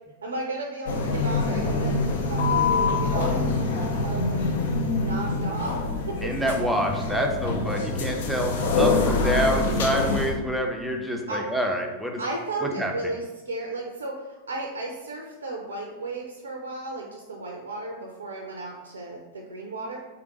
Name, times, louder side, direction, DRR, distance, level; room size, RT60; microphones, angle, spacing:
voice 1, 0.2-5.8 6.1-6.2 9.2-9.3 11.3-11.4 12.2-20.0, right 2 dB, 70° right, 1 dB, 0.4 m, -34 dB
sound 1, 0.9-10.3, left 3 dB, 55° left, 0.5 m, -25 dB
voice 2, 6.2-12.2 12.6-12.9, equal, 5° right, 1 dB, 0.5 m, -27 dB
3.4 x 3.4 x 3.0 m, 1.1 s
figure-of-eight pair, 90°, 0 cm